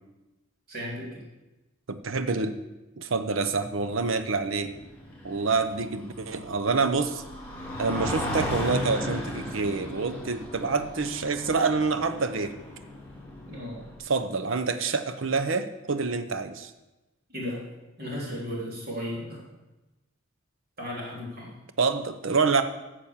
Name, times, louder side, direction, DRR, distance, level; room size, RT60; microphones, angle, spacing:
voice 1, 0.7-1.2 13.5-13.8 17.3-17.6 18.0-19.4 20.8-21.6, left 1 dB, 45° right, -3 dB, 3.3 m, -35 dB
voice 2, 1.9-2.6 3.0-4.7 5.2-7.2 7.8-12.6 14.1-16.7 21.8-22.6, right 4 dB, 65° right, 11 dB, 0.8 m, -27 dB
sound 1, 3.5-14.0, left 1 dB, 10° left, 3.1 m, -36 dB
9.0 x 7.1 x 7.2 m, 1.0 s
head